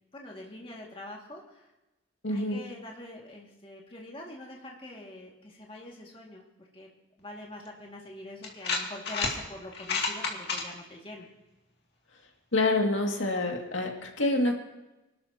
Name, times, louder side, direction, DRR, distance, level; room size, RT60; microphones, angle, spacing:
voice 1, 0.1-1.7 2.3-6.9 7.2-11.3, left 1 dB, 30° left, -2 dB, 2.1 m, -44 dB
voice 2, 2.2-2.6 12.5-14.5, left 2 dB, 80° left, 1 dB, 2.3 m, -27 dB
sound 1, 7.7-7.8 8.4-9.4 9.7-10.6, left 4 dB, 55° left, 2.4 m, -30 dB
25.5 x 12.5 x 2.9 m, 1.0 s
head